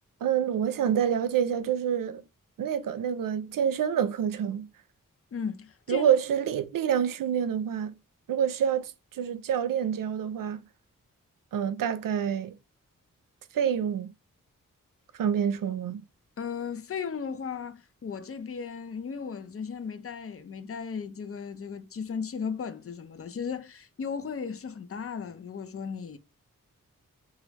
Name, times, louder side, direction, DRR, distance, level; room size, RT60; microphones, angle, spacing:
voice 1, 0.2-2.2 2.6-4.7 5.9-7.9 8.3-10.6 11.5-12.6 13.5-14.1 15.2-16.0, right 8 dB, 75° right, 0.5 m, -27 dB
voice 2, 5.3-6.1 16.4-26.2, left 6 dB, 45° left, 0.6 m, -36 dB
2.9 x 2.4 x 3.2 m
cardioid pair, 40°, 34 cm